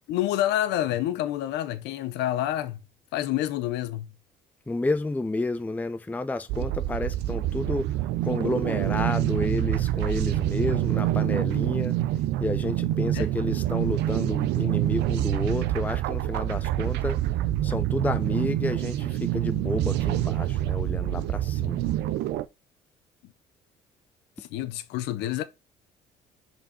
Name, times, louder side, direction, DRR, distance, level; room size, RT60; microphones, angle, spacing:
voice 1, 0.1-2.8 3.1-4.1 13.0-13.3 24.4-25.4, left 13 dB, 85° left, 0.7 m, -28 dB
voice 2, 4.7-11.9 12.4-17.2 17.6-21.9, left 2 dB, 10° left, 0.5 m, -31 dB
sound 1, 6.5-22.4, right 14 dB, 85° right, 0.6 m, -26 dB
5.4 x 4.5 x 5.2 m
cardioid pair, 110°, 17 cm